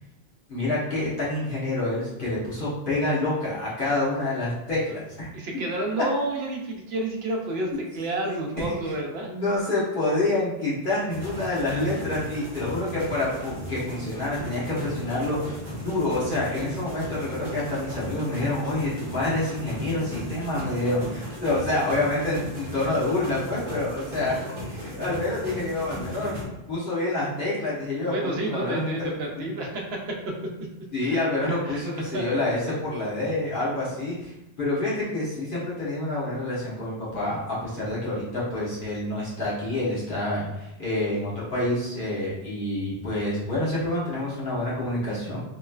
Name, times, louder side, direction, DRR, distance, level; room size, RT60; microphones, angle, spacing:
voice 1, 0.5-5.3 8.2-8.7 9.2-24.4 24.6-26.4 26.7-29.5 30.9-45.4, left 2 dB, 55° left, -9 dB, 1.3 m, -27 dB
voice 2, 5.3-9.3 11.7-11.9 28.0-29.8 30.3-30.4 31.0-31.2 31.6-31.8 32.1-32.3, right 2 dB, 80° right, 0 dB, 0.9 m, -30 dB
sound 1, 11.1-26.5, equal, 50° right, 1.0 m, -36 dB
3.0 x 3.0 x 2.3 m, 0.91 s
omnidirectional pair, 1.0 m